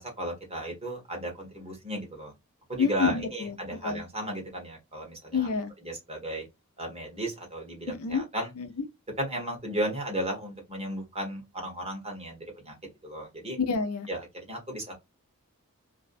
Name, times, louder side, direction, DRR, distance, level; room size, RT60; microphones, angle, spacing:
voice 1, 0.0-2.3 2.7-5.4 5.8-6.4 6.8-8.5 9.2-12.7 13.0-13.6 14.1-14.2 14.5-14.9, right 1 dB, 25° right, 1.1 m, -34 dB
voice 2, 2.8-3.6 3.8-4.0 5.3-5.7 7.9-8.3 8.6-8.9 13.6-14.1, left 5 dB, 75° left, 0.5 m, -28 dB
2.6 x 2.1 x 2.5 m
head